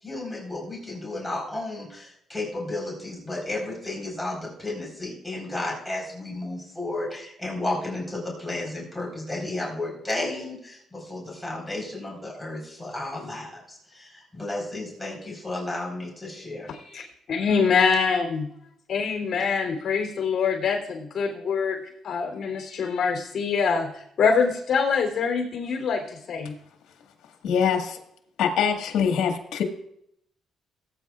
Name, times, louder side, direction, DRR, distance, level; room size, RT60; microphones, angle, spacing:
voice 1, 0.0-16.7, left 2 dB, 5° left, -3 dB, 4.3 m, -33 dB
voice 2, 16.7-18.5 18.9-21.8 22.0-26.5, left 5 dB, 55° left, 2 dB, 3.2 m, -25 dB
voice 3, 27.4-28.0 28.4-29.6, left 7 dB, 80° left, 4 dB, 1.7 m, -23 dB
18.5 x 9.1 x 2.4 m, 0.73 s
cardioid pair, 90°, 0 cm